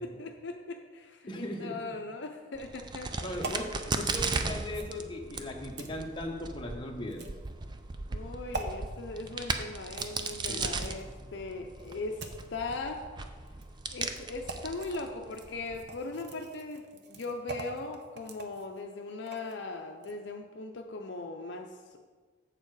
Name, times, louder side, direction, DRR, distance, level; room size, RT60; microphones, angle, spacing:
voice 1, 0.0-3.1 8.1-13.1 13.9-22.0, left 3 dB, 60° left, 4 dB, 0.5 m, -39 dB
voice 2, 1.3-1.8 3.2-7.3 10.5-10.8, left 1 dB, 25° left, 1 dB, 0.9 m, -38 dB
Crack, 2.5-15.8, right 3 dB, 20° right, 0.4 m, -37 dB
sound 1, 3.4-3.7 4.7-4.9 5.8-5.9 7.1-7.5 8.5-8.7 9.9-11.1 11.8-12.5 13.5-13.6 14.0-14.2 14.5-15.0 15.3-19.6 19.9-20.1, right 2 dB, 55° right, 0.7 m, -43 dB
7.5 x 6.8 x 4.7 m, 1.5 s
head